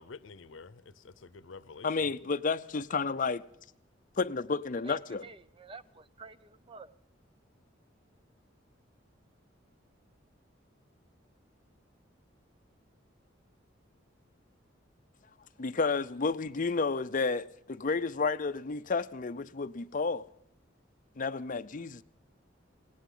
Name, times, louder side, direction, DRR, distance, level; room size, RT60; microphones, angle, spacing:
voice 1, 0.0-2.1, left 4 dB, 85° left, 0.7 m, -49 dB
voice 2, 1.8-3.4 4.2-5.2 15.6-20.3 21.2-22.0, left 4 dB, 45° left, 0.6 m, -31 dB
voice 3, 4.8-6.9, right 3 dB, 30° right, 0.6 m, -50 dB
20.0 x 17.5 x 3.9 m
head